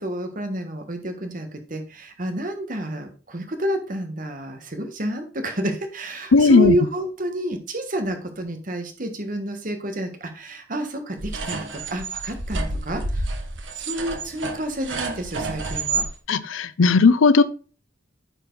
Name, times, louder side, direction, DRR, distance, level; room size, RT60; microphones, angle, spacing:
voice 1, 0.0-13.3 13.7-16.0, right 1 dB, 45° right, 1.4 m, -29 dB
voice 2, 6.3-6.7 16.3-17.4, left 4 dB, 90° left, 0.5 m, -16 dB
sound 1, 11.2-16.1, right 3 dB, 65° right, 1.2 m, -29 dB
9.1 x 4.5 x 3.9 m
head